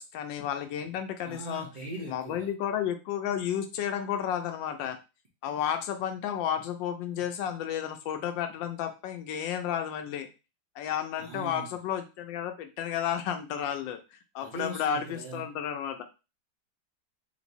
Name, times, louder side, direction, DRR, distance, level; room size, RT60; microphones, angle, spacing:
voice 1, 0.0-1.7 2.1-5.0 5.4-10.3 10.8-16.0, left 9 dB, 85° left, 7 dB, 1.3 m, -32 dB
voice 2, 1.2-2.5 11.2-11.7 14.4-15.5, right 2 dB, 75° right, -3 dB, 0.4 m, -40 dB
3.3 x 3.0 x 2.6 m, 0.30 s
omnidirectional pair, 2.0 m